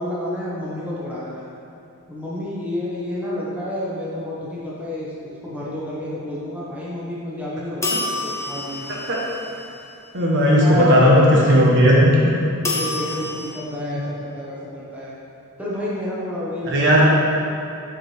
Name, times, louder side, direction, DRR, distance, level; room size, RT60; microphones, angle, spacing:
voice 1, 0.0-1.4 2.1-9.1 10.6-11.6 12.7-15.1 15.6-17.1, left 1 dB, 5° right, -7 dB, 1.0 m, -30 dB
sound 1, 7.8-10.0 12.6-13.5, left 2 dB, 10° left, 0.7 m, -28 dB
voice 2, 10.1-12.3 13.6-14.0 16.7-17.1, equal, 55° right, -4 dB, 1.0 m, -15 dB
7.3 x 4.5 x 3.3 m, 2.6 s
head